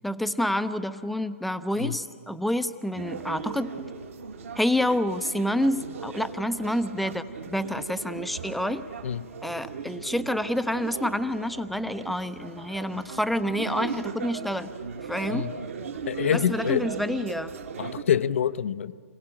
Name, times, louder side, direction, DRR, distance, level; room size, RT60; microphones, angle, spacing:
voice 1, 0.0-3.7 4.6-8.8 9.4-14.7 15.1-15.5 16.3-17.5, left 1 dB, ahead, 11 dB, 0.6 m, -28 dB
sound 1, 2.9-18.0, right 5 dB, 60° right, 2.0 m, -38 dB
voice 2, 16.1-16.9 17.8-18.9, left 9 dB, 55° left, 15 dB, 0.7 m, -26 dB
26.0 x 17.0 x 8.8 m, 2.2 s
figure-of-eight pair, 130°, 8 cm